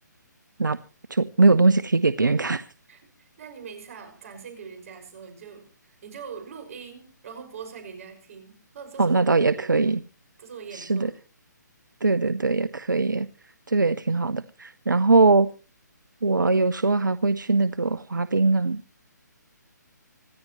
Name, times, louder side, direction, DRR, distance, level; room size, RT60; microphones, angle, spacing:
voice 1, 1.1-2.7 9.0-10.0 10.7-11.1 12.0-13.3 13.7-15.5 16.2-18.8, right 3 dB, 85° right, 0.8 m, -21 dB
voice 2, 2.9-9.9 10.4-11.1, right 6 dB, 45° right, 5.9 m, -42 dB
27.0 x 10.5 x 3.1 m
figure-of-eight pair, 140°, 10 cm